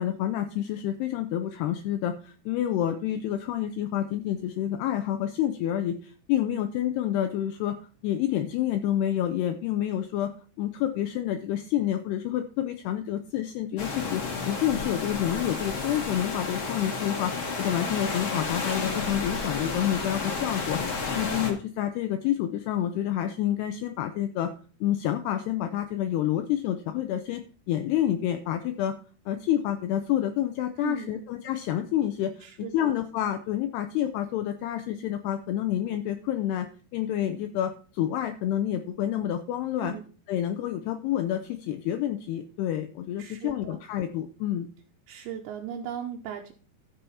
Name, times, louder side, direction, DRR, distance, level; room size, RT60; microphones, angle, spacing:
voice 1, 0.0-7.8 8.0-10.3 10.6-17.3 17.6-20.8 21.1-24.5 24.8-29.0 29.3-32.5 32.7-40.0 40.3-44.7, left 11 dB, 80° left, 8 dB, 2.4 m, -28 dB
sound 1, 13.8-21.5, left 4 dB, 50° left, 1.5 m, -31 dB
voice 2, 30.8-31.2 32.4-32.9 39.8-40.0 43.2-43.8 45.1-46.5, right 9 dB, 80° right, 1 dB, 3.0 m, -37 dB
13.0 x 7.0 x 4.2 m, 0.39 s
omnidirectional pair, 5.4 m